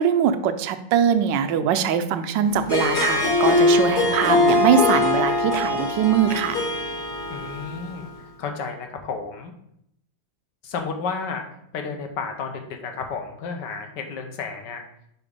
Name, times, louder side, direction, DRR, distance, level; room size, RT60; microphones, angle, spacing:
voice 1, 0.0-6.6, right 8 dB, 75° right, 9 dB, 1.2 m, -22 dB
Harp, 2.6-8.0, left 2 dB, 30° left, 1.1 m, -22 dB
voice 2, 7.3-8.1 8.4-9.5 10.6-11.4 11.7-14.8, left 5 dB, 70° left, 5 dB, 1.5 m, -32 dB
5.0 x 4.7 x 5.1 m, 0.75 s
omnidirectional pair, 2.1 m